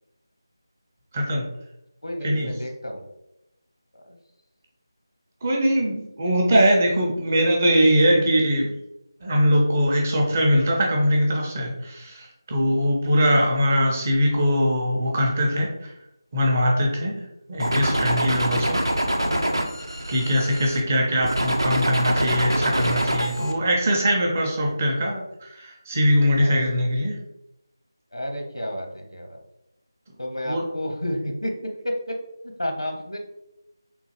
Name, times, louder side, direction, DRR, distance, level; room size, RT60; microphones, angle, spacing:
voice 1, 1.1-1.5 2.2-2.5 5.4-8.7 9.2-15.9 16.3-17.2 17.5-18.8 20.1-27.2 30.5-30.6, equal, 25° right, -1 dB, 0.6 m, -21 dB
voice 2, 2.0-3.1 3.9-4.2 26.4-26.7 28.1-29.4 30.2-32.2 32.4-33.2, equal, 80° left, 3 dB, 0.8 m, -31 dB
sound 1, 17.6-20.8 21.2-23.5, right 1 dB, 80° right, 0.6 m, -25 dB
3.6 x 2.4 x 2.9 m, 0.84 s
figure-of-eight pair, 165°, 2 cm